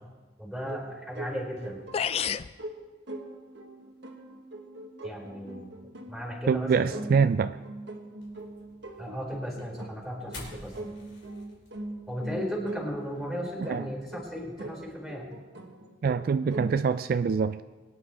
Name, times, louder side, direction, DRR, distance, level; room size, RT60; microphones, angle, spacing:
voice 1, 0.4-1.8 5.0-5.7 6.1-6.9 9.0-10.9 12.1-15.3, equal, ahead, 4.1 m, -35 dB
sound 1, 0.7-16.7, right 2 dB, 80° right, 1.4 m, -42 dB
sound 2, 1.6-1.7 1.9-2.5, left 8 dB, 35° left, 0.3 m, -28 dB
voice 2, 6.5-7.6 13.6-13.9 16.0-17.6, right 5 dB, 55° right, 0.3 m, -25 dB
sound 3, 8.2-14.9, left 2 dB, 85° left, 4.2 m, -51 dB
23.0 x 9.7 x 3.4 m
head